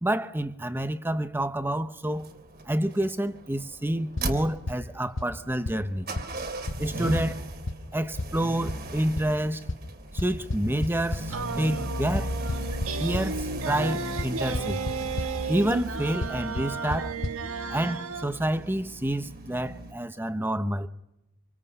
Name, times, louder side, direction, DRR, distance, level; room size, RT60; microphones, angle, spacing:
voice 1, 0.0-2.3 2.7-6.1 6.8-7.4 7.9-9.7 10.1-12.3 13.0-14.8 15.5-17.2 17.7-20.9, right 1 dB, 10° right, 0.9 m, -28 dB
sound 1, 2.1-19.9, equal, 45° right, 3.0 m, -37 dB
sound 2, 4.2-4.3 4.7-4.8 5.2-5.3 5.7-5.8 6.2-6.3 6.7-6.8 7.2-7.3 7.7-7.8 8.2-8.3 8.7-8.8 9.2-9.3 9.7-9.8 10.2-11.2 12.2-13.2 14.2-14.3 14.5-14.9 15.2-15.3 16.2-16.3 16.6-16.7 16.9-17.0 17.2-17.3, left 2 dB, 60° left, 1.1 m, -29 dB
sound 3, 11.3-18.3, right 5 dB, 80° right, 1.8 m, -34 dB
26.5 x 26.0 x 5.6 m
head